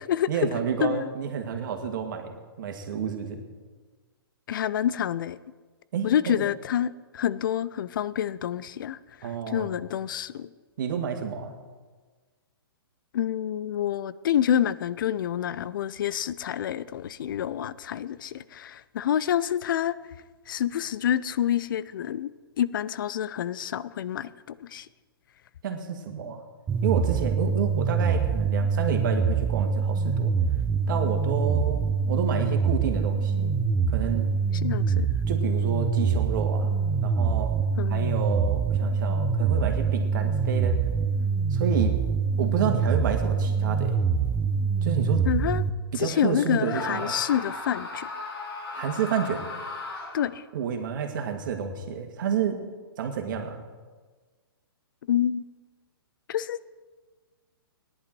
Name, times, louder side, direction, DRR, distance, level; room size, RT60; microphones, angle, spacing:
voice 1, 0.3-3.4 5.9-6.4 9.2-9.7 10.8-11.5 25.6-26.4 26.8-30.3 30.9-33.6 33.9-34.3 35.3-37.5 37.9-40.8 41.5-42.0 42.4-44.0 44.8-45.2 45.9-47.2 48.7-49.4 50.5-52.6 53.0-53.6, right 7 dB, 55° right, 4 dB, 2.1 m, -30 dB
voice 2, 4.5-5.4 6.0-9.0 9.5-10.5 13.1-20.0 20.5-22.3 22.6-24.3 24.6-24.9 34.6-35.1 37.8-38.2 45.3-45.6 46.0-48.1 50.1-50.4 55.1-55.4 56.3-56.6, left 10 dB, 55° left, 18 dB, 0.6 m, -27 dB
sound 1, 26.7-45.7, right 5 dB, 15° right, 0.8 m, -25 dB
Screaming, 46.6-50.4, left 2 dB, 80° left, 3.1 m, -36 dB
17.5 x 11.0 x 4.6 m, 1.4 s
hypercardioid pair, 130°, 13 cm